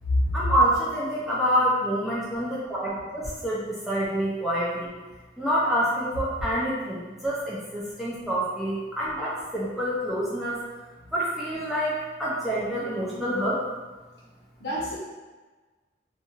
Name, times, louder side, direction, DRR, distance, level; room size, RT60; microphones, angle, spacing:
voice 1, 0.3-5.0 5.4-10.6 11.1-13.8, equal, ahead, -8 dB, 0.4 m, -27 dB
voice 2, 14.6-15.0, left 1 dB, 65° left, -6 dB, 0.8 m, -26 dB
2.5 x 2.5 x 2.8 m, 1.3 s
head